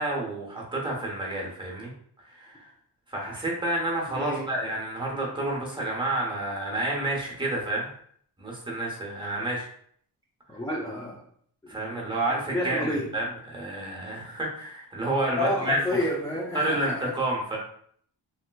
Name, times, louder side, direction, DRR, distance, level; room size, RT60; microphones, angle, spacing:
voice 1, 0.0-1.9 2.3-2.7 3.1-7.9 8.4-9.7 11.7-15.8 16.5-17.6, right 1 dB, 10° right, -3 dB, 0.8 m, -29 dB
voice 2, 4.1-4.5 5.1-5.3 10.5-11.2 12.3-13.1 15.4-17.1, left 1 dB, 10° left, -5 dB, 0.4 m, -30 dB
3.2 x 2.8 x 2.2 m, 0.62 s
wide cardioid pair, 150°, 43 cm